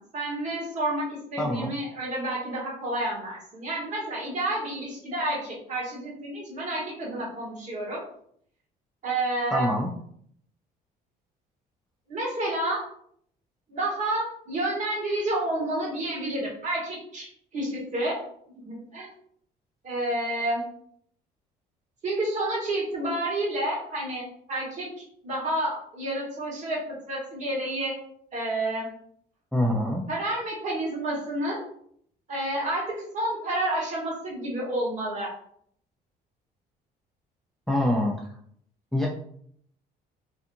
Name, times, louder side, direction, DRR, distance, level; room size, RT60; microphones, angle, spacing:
voice 1, 0.0-8.0 9.0-9.7 12.1-12.8 13.7-18.2 18.6-19.1 19.8-20.6 22.0-26.8 27.1-28.0 28.3-28.9 30.1-31.6 32.3-32.8 33.1-35.3, right 1 dB, 45° right, -4 dB, 1.3 m, -30 dB
voice 2, 1.4-1.7 9.5-9.9 29.5-30.0 37.7-38.2 38.9-39.1, left 1 dB, ahead, -2 dB, 0.3 m, -25 dB
2.6 x 2.4 x 2.6 m, 0.65 s
cardioid pair, 110°, 17 cm